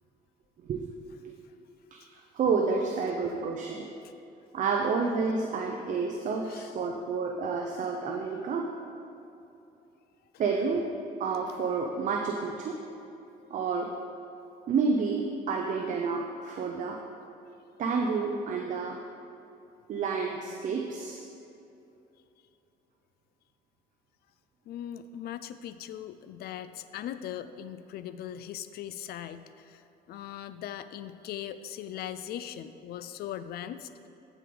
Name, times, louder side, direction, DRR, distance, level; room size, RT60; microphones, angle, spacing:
voice 1, 1.9-3.9 4.5-8.7 10.4-10.9 11.2-12.8 13.5-13.9 14.7-17.0 17.8-19.0 19.9-21.2, right 4 dB, 50° right, 2 dB, 0.7 m, -30 dB
voice 2, 13.3-13.6 24.7-29.8 30.1-34.1, left 10 dB, 65° left, 12 dB, 0.5 m, -40 dB
14.5 x 5.1 x 3.9 m, 2.8 s
cardioid pair, 110°, 17 cm